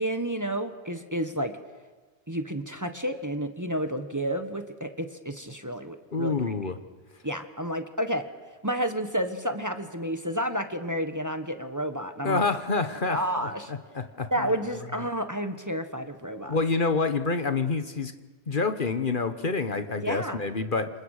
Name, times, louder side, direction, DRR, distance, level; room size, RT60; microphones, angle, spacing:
voice 1, 0.0-1.5 2.3-6.4 7.2-8.2 8.6-12.6 13.1-13.7 14.3-16.6 20.0-20.4, equal, 15° right, 8 dB, 1.4 m, -30 dB
voice 2, 6.1-6.8 12.2-13.2 13.7-14.3 16.5-18.1 18.5-20.9, left 4 dB, 50° left, 9 dB, 1.4 m, -27 dB
28.0 x 27.5 x 6.6 m, 1.3 s
omnidirectional pair, 1.1 m